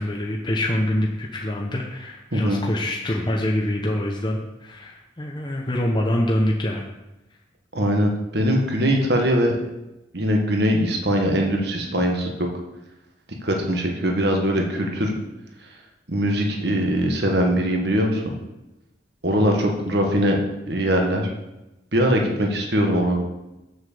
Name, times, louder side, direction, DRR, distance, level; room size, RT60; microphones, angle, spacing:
voice 1, 0.0-6.9 19.4-19.7, left 1 dB, 25° left, 0 dB, 0.8 m, -25 dB
voice 2, 7.7-9.6 10.1-12.5 13.4-15.1 16.1-18.3 19.2-20.4 20.7-21.3 21.9-23.2, equal, 60° right, 2 dB, 1.6 m, -21 dB
7.4 x 6.4 x 6.7 m, 1.0 s
head